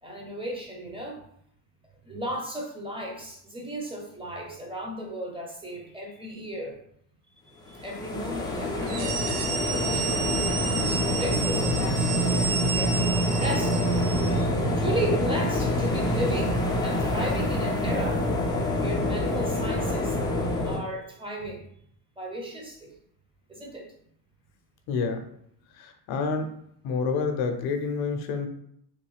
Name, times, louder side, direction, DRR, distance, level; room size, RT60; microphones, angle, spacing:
voice 1, 0.0-1.2 2.0-6.7 7.7-9.3 9.6-10.6 11.2-13.8 14.8-20.3 20.6-21.6 22.2-22.9 23.5-23.9, right 1 dB, 10° right, 0 dB, 0.8 m, -35 dB
sound 1, 7.7-20.8, left 1 dB, 10° left, 0.4 m, -26 dB
sound 2, 8.8-14.5, right 6 dB, 70° right, 0.6 m, -31 dB
voice 2, 24.9-25.2 25.8-26.5 26.8-28.5, left 5 dB, 50° left, 6 dB, 0.6 m, -28 dB
3.1 x 2.2 x 3.3 m, 0.70 s
supercardioid pair, 100°, 47 cm